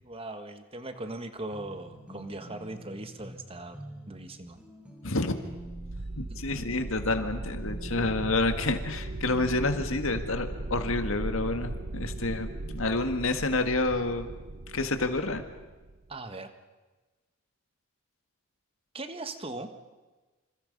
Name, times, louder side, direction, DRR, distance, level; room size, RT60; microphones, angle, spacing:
voice 1, 0.0-3.8 4.1-4.6 16.1-16.5 18.9-19.7, right 2 dB, 25° right, 8 dB, 1.6 m, -39 dB
sound 1, 1.5-10.4, equal, 5° right, 3.5 m, -47 dB
voice 2, 5.0-5.4 6.1-14.3 14.7-15.4, left 2 dB, 70° left, 8 dB, 1.9 m, -29 dB
sound 2, 5.5-16.1, right 2 dB, 55° right, 0.9 m, -38 dB
27.5 x 27.0 x 5.5 m, 1.2 s
head